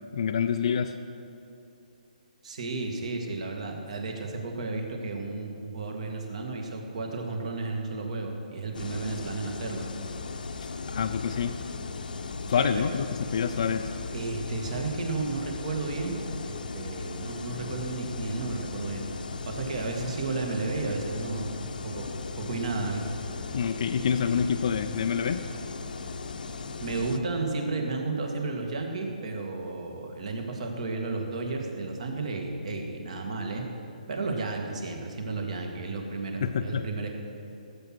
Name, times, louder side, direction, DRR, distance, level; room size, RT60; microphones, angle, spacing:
voice 1, 0.1-0.9 10.9-11.6 12.5-13.9 23.5-25.4 36.4-36.9, left 7 dB, 45° left, 6 dB, 0.4 m, -27 dB
voice 2, 2.4-9.9 12.6-12.8 14.1-16.1 16.4-19.1 19.5-21.6 21.8-23.2 26.8-33.6 34.1-37.1, right 3 dB, 50° right, 2 dB, 2.0 m, -33 dB
sound 1, 8.7-27.2, left 4 dB, 75° left, 0.9 m, -37 dB
17.0 x 7.7 x 6.1 m, 2.8 s
hypercardioid pair, 170°, 5 cm